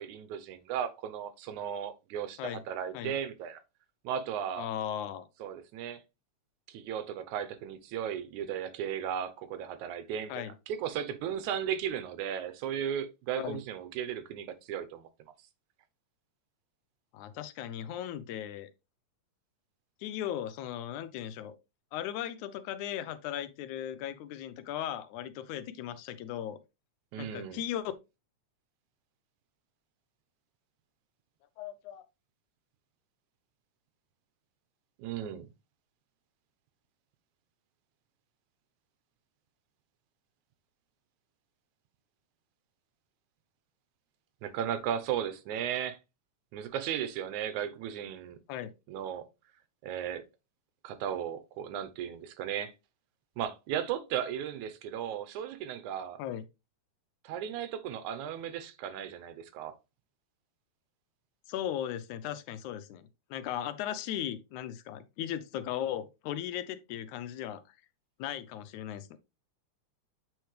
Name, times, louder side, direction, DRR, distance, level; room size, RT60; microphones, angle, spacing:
voice 1, 0.0-3.6 4.0-4.7 5.4-6.0 6.7-15.1 27.1-27.6 35.0-35.5 44.4-46.0 46.5-48.4 48.9-49.3 49.8-50.2 50.8-52.7 53.4-56.2 57.2-59.8, right 9 dB, 85° right, 2.3 m, -36 dB
voice 2, 4.6-5.3 10.3-10.5 13.4-13.6 17.1-18.7 20.0-21.6 21.9-26.6 27.2-27.9 31.6-32.1 48.5-48.7 56.2-56.4 61.5-67.6 68.2-69.2, left 11 dB, 90° left, 2.2 m, -37 dB
8.1 x 4.5 x 3.2 m
omnidirectional pair, 3.3 m